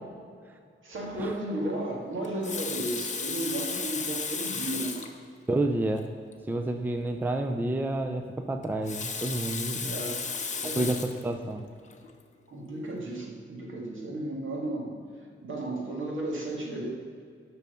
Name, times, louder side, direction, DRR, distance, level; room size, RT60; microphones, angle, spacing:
voice 1, 0.8-5.0 9.8-10.2 10.6-11.0 11.5-11.6 12.5-15.0 15.4-16.9, right 1 dB, 70° right, -1 dB, 2.3 m, -34 dB
Water tap faucet, 2.2-5.2 5.9-6.0 6.3-6.4 8.6-11.2 11.9-12.1, left 5 dB, 35° left, 0.8 m, -34 dB
voice 2, 5.5-6.1 6.5-10.0 10.8-11.6, right 2 dB, 10° right, 6 dB, 0.4 m, -29 dB
10.5 x 6.1 x 6.9 m, 2.2 s
wide cardioid pair, 175°, 21 cm